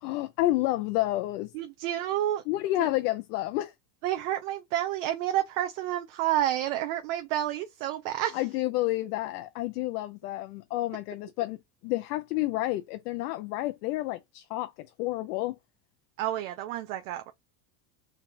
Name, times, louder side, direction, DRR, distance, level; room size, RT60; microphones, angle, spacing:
voice 1, 0.0-1.5 2.5-3.7 8.3-11.6 11.8-15.6, left 16 dB, 65° left, 0.6 m, -30 dB
voice 2, 1.5-2.4 2.8-2.9 4.0-8.4 16.2-17.3, right 13 dB, 55° right, 0.6 m, -29 dB
3.5 x 2.3 x 4.0 m
supercardioid pair, 170°, 50 cm